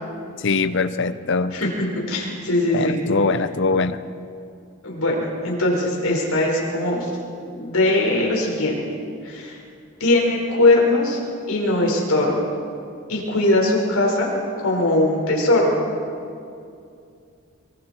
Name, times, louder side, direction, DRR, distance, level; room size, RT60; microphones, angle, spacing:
voice 1, 0.4-1.5 2.7-4.0, left 3 dB, 55° left, 12 dB, 0.8 m, -22 dB
voice 2, 1.9-3.0 4.8-7.1 7.5-8.8 9.2-9.6 10.0-11.2 11.5-12.4 13.1-14.3 14.6-15.7, left 2 dB, 90° left, -1 dB, 5.2 m, -20 dB
24.5 x 24.0 x 4.5 m, 2.4 s
head